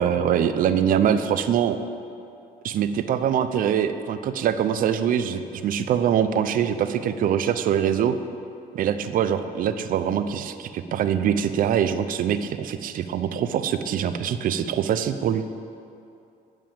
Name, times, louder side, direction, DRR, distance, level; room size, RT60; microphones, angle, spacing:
voice 1, 0.0-1.8 2.6-8.2 8.7-15.4, right 9 dB, 55° right, 10 dB, 0.6 m, -23 dB
9.3 x 6.7 x 8.8 m, 2.6 s
cardioid pair, 110°, 17 cm